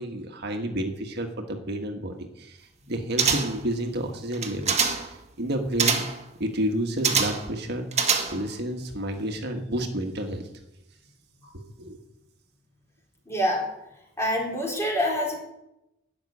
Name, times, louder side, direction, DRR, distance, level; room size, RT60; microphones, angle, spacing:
voice 1, 0.0-2.6 2.9-6.1 6.4-7.9 8.3-10.5 11.8-12.0, right 1 dB, 60° right, 4 dB, 1.5 m, -30 dB
sound 1, 3.2-3.7 4.3-5.1 5.8-6.2 7.0-7.5 7.9-8.6 8.9-9.0, right 6 dB, 35° right, 1.5 m, -24 dB
voice 2, 13.3-13.6 14.2-15.4, equal, 15° left, -1 dB, 4.1 m, -25 dB
12.0 x 7.5 x 9.7 m, 0.86 s
head